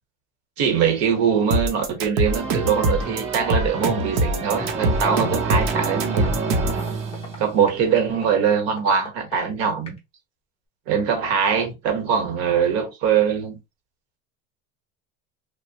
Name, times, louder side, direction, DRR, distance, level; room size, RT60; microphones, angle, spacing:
voice 1, 0.6-6.4 7.4-10.0 10.9-13.6, right 7 dB, 55° right, 1.1 m, -22 dB
sound 1, 1.5-6.8, right 1 dB, 90° right, 0.8 m, -23 dB
sound 2, 2.2-7.9, right 4 dB, 20° right, 0.5 m, -29 dB
sound 3, 4.4-10.0, left 4 dB, 20° left, 0.6 m, -38 dB
3.0 x 2.1 x 2.8 m
cardioid pair, 180°, 29 cm